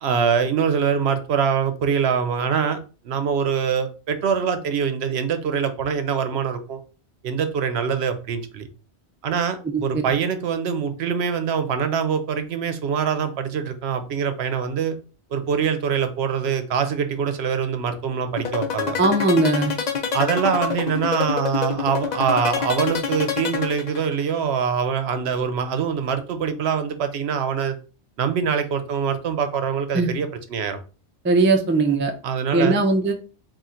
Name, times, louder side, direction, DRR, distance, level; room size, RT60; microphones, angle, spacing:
voice 1, 0.0-2.8 3.0-6.8 7.2-8.7 9.2-15.0 15.3-19.0 20.1-27.7 28.2-30.8 32.2-32.8, right 7 dB, 75° right, 9 dB, 0.8 m, -24 dB
voice 2, 9.6-10.0 19.0-19.7 29.9-30.1 31.2-32.1 32.5-33.1, right 3 dB, 20° right, 5 dB, 0.3 m, -19 dB
sound 1, 18.4-24.3, left 6 dB, 50° left, 0.6 m, -26 dB
3.7 x 2.4 x 4.2 m, 0.36 s
omnidirectional pair, 1.1 m